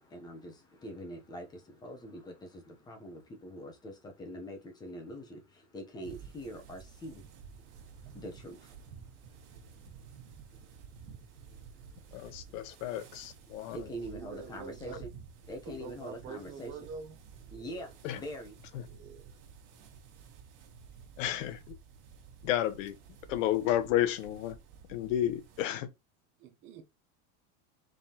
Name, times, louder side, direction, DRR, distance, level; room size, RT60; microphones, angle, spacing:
voice 1, 0.0-7.3 7.6-12.8 13.4-15.1 15.5-16.7 17.5-18.6, equal, 10° left, 0.7 m, -45 dB
sound 1, 6.0-25.7, right 6 dB, 55° right, 1.7 m, -52 dB
voice 2, 12.1-13.8 18.0-18.2 21.2-21.8 22.4-23.0 23.3-24.6 24.9-25.9, left 12 dB, 75° left, 0.9 m, -31 dB
voice 3, 13.7-15.0 15.6-17.1 17.5-17.9 18.8-19.4 26.4-26.8, right 6 dB, 30° right, 0.7 m, -46 dB
5.1 x 3.5 x 2.8 m
supercardioid pair, 170°, 39 cm